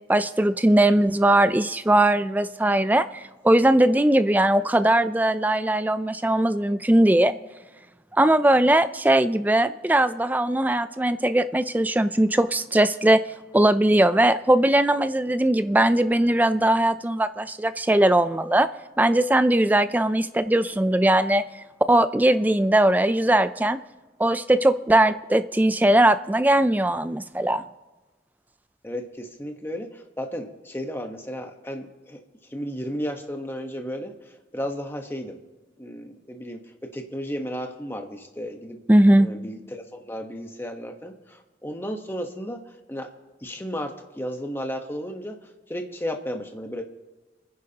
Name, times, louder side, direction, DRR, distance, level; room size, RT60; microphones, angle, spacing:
voice 1, 0.1-7.3 8.1-13.2 13.5-18.7 19.0-21.4 21.9-23.8 24.2-27.6 38.9-39.3, right 1 dB, 10° right, 12 dB, 0.3 m, -20 dB
voice 2, 28.8-32.2 32.5-35.4 35.8-36.6 36.9-38.8 39.2-42.6 42.9-43.1 43.4-45.4 45.7-46.8, equal, 10° left, 4 dB, 1.0 m, -33 dB
28.5 x 10.5 x 2.9 m, 1.2 s
head